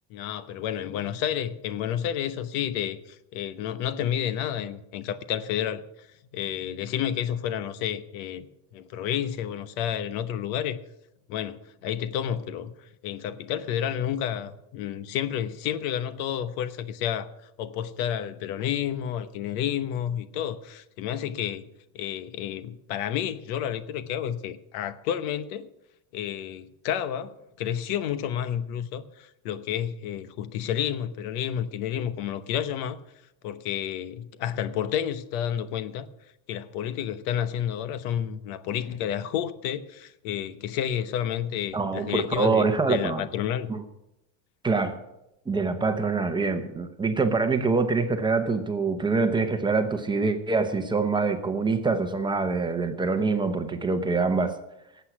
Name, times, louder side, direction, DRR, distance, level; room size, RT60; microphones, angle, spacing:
voice 1, 0.1-5.8 6.3-8.5 8.7-10.8 11.3-12.7 13.0-17.3 17.6-21.7 21.9-25.7 26.1-33.0 33.4-36.1 36.5-43.7, left 10 dB, 80° left, 13 dB, 1.1 m, -30 dB
voice 2, 41.7-43.2 43.7-43.8 44.6-45.0 45.5-54.5, right 4 dB, 10° right, 7 dB, 0.8 m, -25 dB
18.0 x 8.2 x 5.9 m, 0.88 s
cardioid pair, 160°, 41 cm